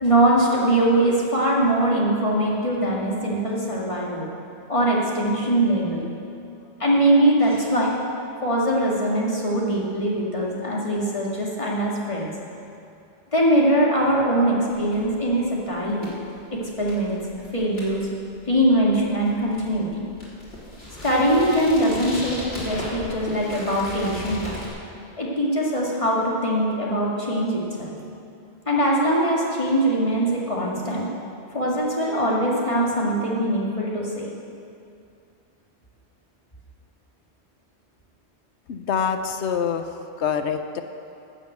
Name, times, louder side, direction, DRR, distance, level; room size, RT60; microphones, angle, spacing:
voice 1, 0.0-4.3 4.7-6.0 6.8-7.9 8.4-12.3 13.3-16.1 16.5-17.2 17.5-18.1 18.5-20.1 21.0-24.6 25.2-27.9 28.7-31.1 31.5-34.3, right 1 dB, 30° left, -4 dB, 2.2 m, -22 dB
sound 1, 14.7-24.7, left 1 dB, 65° left, 3.4 m, -38 dB
voice 2, 38.7-39.9 40.2-40.8, left 7 dB, 80° left, 8 dB, 1.0 m, -25 dB
12.5 x 7.4 x 7.9 m, 2.6 s
omnidirectional pair, 1.1 m